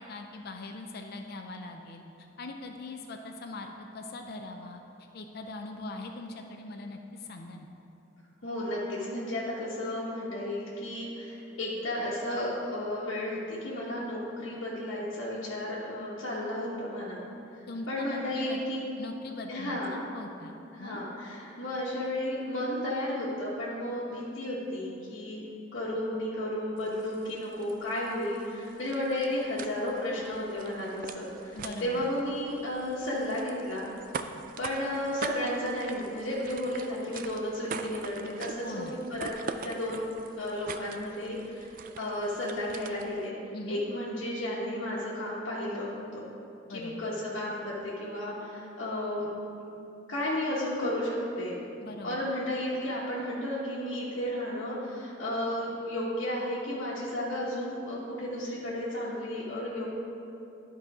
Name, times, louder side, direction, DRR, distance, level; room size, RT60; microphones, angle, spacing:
voice 1, 0.1-4.8 5.1-7.7 17.7-18.6 19.0-21.0 31.5-32.1 38.6-39.0 43.5-43.8 46.7-47.1 51.8-52.2, left 2 dB, 50° left, 4 dB, 0.4 m, -41 dB
voice 2, 8.4-17.2 17.9-18.9 19.5-19.9 20.7-25.4 25.7-33.9 34.6-39.4 39.6-40.1 40.4-43.4 43.7-46.2 46.7-49.3 50.1-51.6 52.0-60.0, left 1 dB, 80° left, -8 dB, 1.2 m, -33 dB
sound 1, 26.8-43.3, right 5 dB, 45° right, 0.3 m, -44 dB
11.5 x 4.0 x 4.8 m, 2.8 s
head